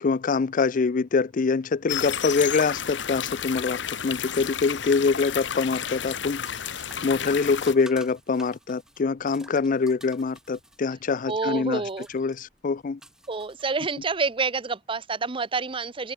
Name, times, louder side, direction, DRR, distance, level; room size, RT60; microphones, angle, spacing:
voice 1, 0.0-6.5 7.0-11.8 12.1-13.0, left 4 dB, 45° left, 0.4 m, -24 dB
sound 1, 1.9-7.7, left 8 dB, 85° left, 1.1 m, -31 dB
sound 2, 6.4-14.2, right 1 dB, 5° right, 7.1 m, -51 dB
voice 2, 11.3-12.1 13.3-16.1, right 4 dB, 30° right, 0.8 m, -28 dB
head